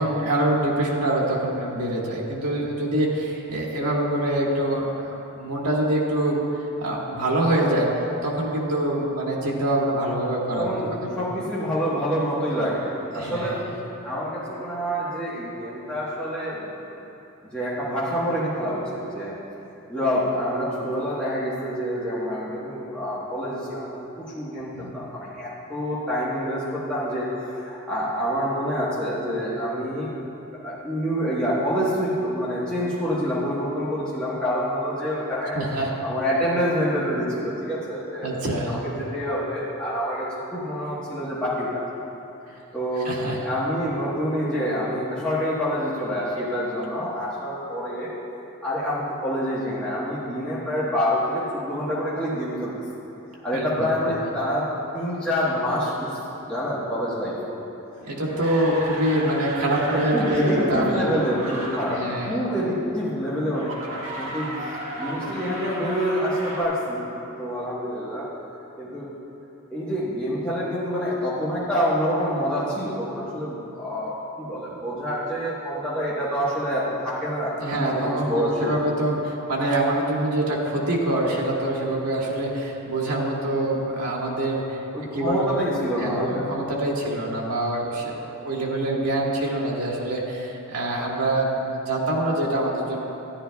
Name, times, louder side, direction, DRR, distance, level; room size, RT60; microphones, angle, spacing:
voice 1, 0.0-4.9 5.4-6.4 6.8-7.9 8.2-10.7 11.0-11.2 13.2-13.6 24.7-25.0 35.6-35.9 38.2-38.8 43.1-43.4 53.5-53.7 54.0-54.1 58.1-61.1 61.9-62.4 77.6-84.8 85.1-85.7 86.0-93.0, right 1 dB, 90° right, -3 dB, 1.6 m, -25 dB
voice 2, 10.6-13.6 14.0-16.7 17.5-19.4 19.9-30.2 30.4-35.6 36.0-38.3 38.7-41.8 42.7-43.1 43.4-48.1 48.6-52.7 53.4-57.4 59.9-67.1 67.4-68.3 68.8-69.1 69.7-78.8 84.9-86.4, equal, 5° left, -10 dB, 1.2 m, -27 dB
sound 1, 57.9-62.2 63.5-66.6, right 1 dB, 60° right, 1.7 m, -35 dB
13.0 x 11.0 x 2.3 m, 2.9 s
head